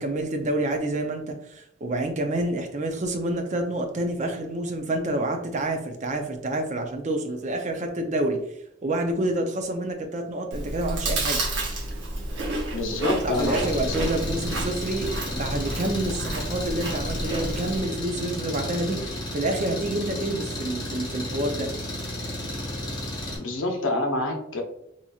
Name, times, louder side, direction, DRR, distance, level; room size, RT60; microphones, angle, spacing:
voice 1, 0.0-8.4 8.8-11.4 13.2-21.7, right 1 dB, 40° right, 4 dB, 0.5 m, -28 dB
Chewing mastication, 10.5-17.8, right 2 dB, 65° right, 0.8 m, -30 dB
voice 2, 12.7-13.9 23.4-24.6, left 2 dB, 85° left, 2 dB, 0.8 m, -27 dB
Engine, 13.3-23.4, left 1 dB, 25° left, 0.9 m, -33 dB
4.1 x 2.9 x 2.3 m, 0.76 s
head